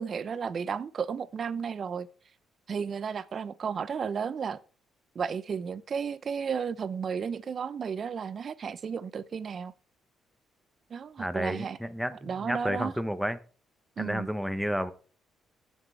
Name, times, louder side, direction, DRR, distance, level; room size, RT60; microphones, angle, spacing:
voice 1, 0.0-2.1 2.7-4.6 5.1-9.7 10.9-11.8 12.2-12.9 14.0-14.3, right 6 dB, 50° right, 0.6 m, -33 dB
voice 2, 11.2-13.4 14.0-14.9, equal, ahead, 1.0 m, -31 dB
17.0 x 6.3 x 3.4 m
cardioid pair, 90°, 0 cm